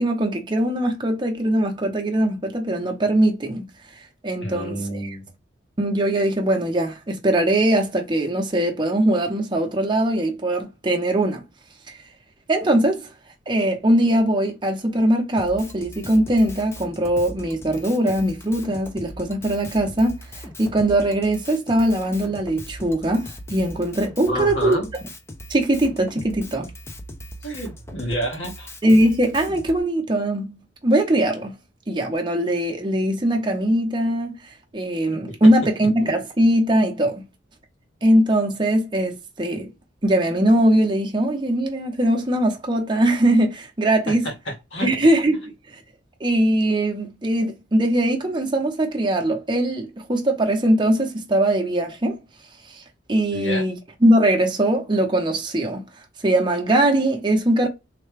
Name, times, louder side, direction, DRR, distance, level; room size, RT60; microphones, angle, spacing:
voice 1, 0.0-3.6 4.2-4.8 5.8-11.4 12.5-13.0 13.5-24.8 25.5-26.6 28.8-31.5 31.9-34.4 34.7-37.2 38.0-39.7 40.0-44.3 44.8-45.8 46.2-52.2 52.7-52.8 53.1-55.8 56.2-57.7, right 1 dB, 25° right, 0.6 m, -21 dB
voice 2, 4.4-5.3 24.3-24.9 27.4-28.7 44.1-44.9 53.3-53.7, equal, 85° left, 1.4 m, -29 dB
Drum kit, 15.4-29.8, equal, 15° left, 0.4 m, -39 dB
3.3 x 2.2 x 3.2 m
head